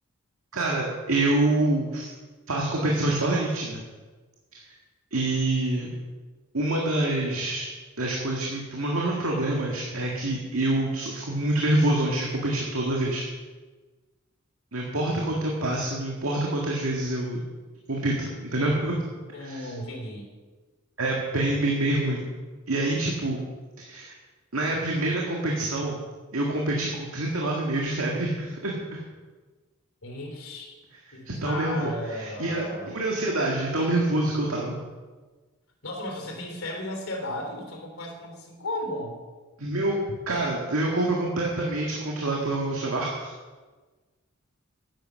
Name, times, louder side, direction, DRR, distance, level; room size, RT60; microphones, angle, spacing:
voice 1, 0.5-2.1 2.5-3.8 4.5-4.6 5.1-5.9 6.5-7.7 8.0-13.2 14.7-17.4 17.9-19.0 19.4-19.7 21.0-22.3 22.7-23.4 23.8-24.1 24.5-26.0 26.3-29.0 31.3-34.8 39.6-40.0 40.3-43.3, right 2 dB, 85° right, -2 dB, 1.9 m, -26 dB
voice 2, 19.3-20.3 30.0-30.8 31.1-32.9 35.8-39.2, left 1 dB, 85° left, 2 dB, 3.3 m, -35 dB
10.5 x 10.0 x 6.3 m, 1.3 s
head